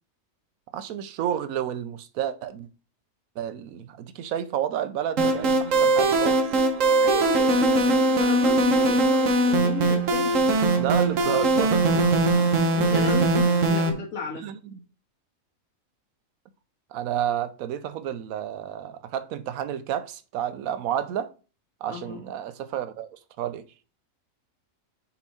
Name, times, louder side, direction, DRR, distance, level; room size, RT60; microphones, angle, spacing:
voice 1, 0.7-2.7 3.4-6.5 10.8-12.1 12.8-13.0 14.4-14.8 16.9-21.3 21.8-23.6, right 10 dB, 90° right, 1.1 m, -30 dB
sound 1, 5.2-13.9, right 2 dB, 70° right, 1.3 m, -21 dB
voice 2, 7.0-10.5 12.7-14.5 21.9-22.2, left 5 dB, 80° left, 2.2 m, -34 dB
5.6 x 4.3 x 4.2 m
omnidirectional pair, 1.4 m